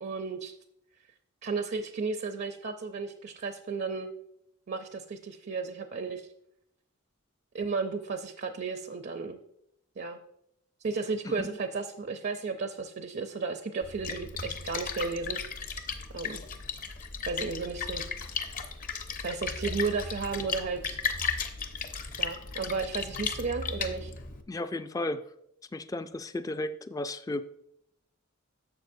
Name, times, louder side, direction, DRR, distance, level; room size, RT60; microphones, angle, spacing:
voice 1, 0.0-0.6 1.4-4.1 4.7-6.3 7.5-9.4 10.0-10.2 10.8-15.4 15.6-15.7 16.1-16.4 17.2-18.0 19.2-21.0 22.2-24.1, right 4 dB, 55° right, 7 dB, 0.5 m, -33 dB
Splash splatter, 13.8-24.4, left 5 dB, 40° left, 0.7 m, -35 dB
voice 2, 24.5-25.2 25.7-27.4, left 2 dB, 15° left, 11 dB, 0.3 m, -34 dB
11.5 x 7.1 x 2.6 m, 0.77 s
head